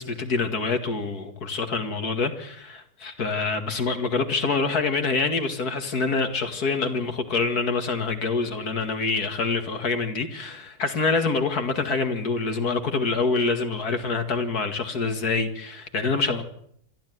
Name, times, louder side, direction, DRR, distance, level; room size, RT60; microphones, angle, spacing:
voice 1, 0.0-16.4, left 4 dB, 80° left, 2.7 m, -26 dB
27.0 x 12.5 x 9.5 m
omnidirectional pair, 1.6 m